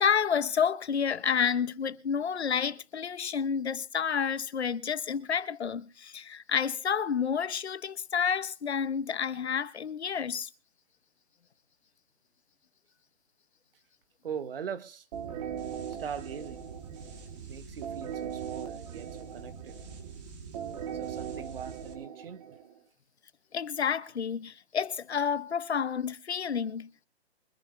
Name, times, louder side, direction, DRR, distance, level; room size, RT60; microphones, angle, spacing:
voice 1, 0.0-10.5 23.5-27.1, left 7 dB, 75° left, 1.1 m, -30 dB
voice 2, 14.2-15.1 15.9-16.6 17.5-19.7 20.9-22.6, right 7 dB, 55° right, 1.6 m, -41 dB
sound 1, 15.1-22.8, right 8 dB, 40° right, 3.0 m, -39 dB
24.0 x 10.5 x 3.3 m
hypercardioid pair, 140°, 33 cm